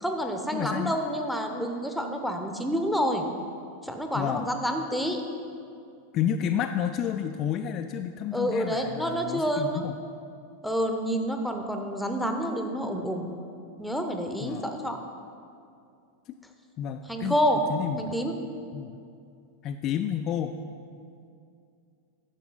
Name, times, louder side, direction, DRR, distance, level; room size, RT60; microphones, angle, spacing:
voice 1, 0.0-3.2 3.8-5.2 8.3-9.9 10.6-13.3 13.8-15.0 17.1-17.6 18.0-18.3, equal, ahead, 5 dB, 0.7 m, -28 dB
voice 2, 0.5-0.9 4.1-4.5 6.1-10.0 14.4-14.6 16.8-17.4 17.7-18.1 18.7-19.0 19.6-20.6, left 9 dB, 35° left, 6 dB, 0.3 m, -30 dB
10.0 x 7.2 x 4.0 m, 2.5 s
figure-of-eight pair, 90°, 0 cm